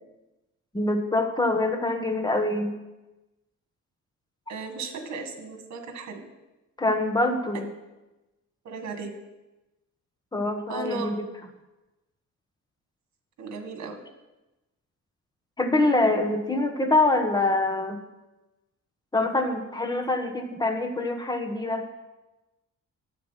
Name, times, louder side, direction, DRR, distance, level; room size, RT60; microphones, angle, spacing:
voice 1, 0.7-2.7 6.8-7.7 10.3-11.3 15.6-18.0 19.1-21.9, left 2 dB, 15° left, 5 dB, 1.1 m, -25 dB
voice 2, 4.5-6.2 8.6-9.1 10.7-11.1 13.4-14.0, right 4 dB, 65° right, 5 dB, 1.8 m, -35 dB
11.0 x 7.9 x 5.7 m, 1.0 s
cardioid pair, 145°, 30 cm